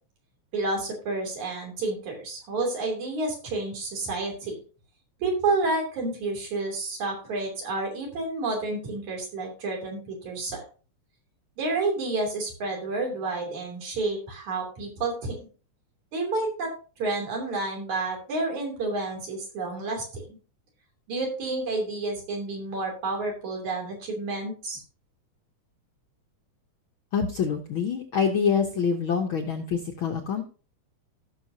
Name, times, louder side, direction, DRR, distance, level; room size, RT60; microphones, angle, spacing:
voice 1, 0.5-4.5 5.2-10.6 11.6-15.5 16.1-16.7 17.0-20.4 21.1-24.8, right 3 dB, 70° right, 0 dB, 4.3 m, -30 dB
voice 2, 27.1-30.4, left 6 dB, 65° left, 3 dB, 1.3 m, -26 dB
16.5 x 6.6 x 2.8 m, 0.37 s
omnidirectional pair, 3.4 m